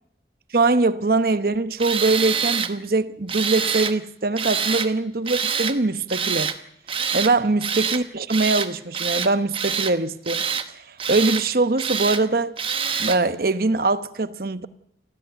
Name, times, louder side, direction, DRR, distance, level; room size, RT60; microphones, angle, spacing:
voice 1, 0.5-6.5 7.1-10.5 10.9-12.5 13.0-14.7, right 3 dB, 55° right, 0.9 m, -22 dB
Tools, 1.8-2.7 3.3-4.0 4.4-4.9 5.3-5.8 6.1-6.6 6.9-7.3 7.6-8.0 8.3-8.7 8.9-9.9 10.3-10.7 11.0-11.4 11.8-12.2 12.6-13.2, right 6 dB, 30° right, 1.1 m, -26 dB
29.5 x 13.0 x 8.0 m
head